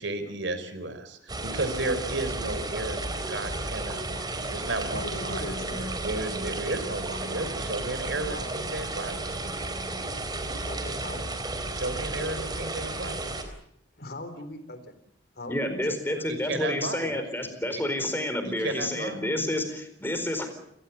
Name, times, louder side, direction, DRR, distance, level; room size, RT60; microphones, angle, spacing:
voice 1, 0.0-5.5 6.0-9.2 11.7-13.2 16.3-17.0 17.7-17.8 18.4-19.2, right 2 dB, 70° right, 11 dB, 4.2 m, -33 dB
sound 1, 1.3-13.4, right 2 dB, 20° right, 3.9 m, -33 dB
voice 2, 4.9-6.0 8.3-8.5 10.7-11.2 14.0-14.9 15.4-16.3 17.0-17.6, left 1 dB, 55° left, 10 dB, 3.7 m, -40 dB
voice 3, 15.5-20.5, left 1 dB, 10° left, 8 dB, 4.4 m, -29 dB
29.0 x 18.5 x 7.3 m, 0.75 s
head